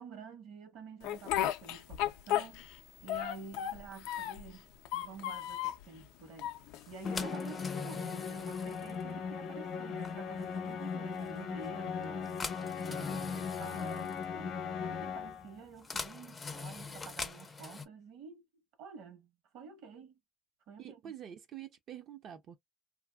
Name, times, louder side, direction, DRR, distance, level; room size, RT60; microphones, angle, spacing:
voice 1, 0.0-2.6 3.0-4.7 4.9-6.5 6.9-18.4 18.8-20.2 20.7-21.1, right 5 dB, 70° right, 1.1 m, -50 dB
Speech, 1.0-2.8 3.1-4.5 4.8-5.8 6.4-7.2, left 12 dB, 85° left, 0.4 m, -34 dB
sound 1, 6.7-17.8, left 4 dB, 20° left, 0.4 m, -45 dB
Musical instrument, 7.0-15.6, left 6 dB, 55° left, 0.7 m, -38 dB
voice 2, 13.1-13.6 20.8-22.6, right 10 dB, 45° right, 0.4 m, -47 dB
2.6 x 2.5 x 2.2 m
cardioid pair, 135°, 0 cm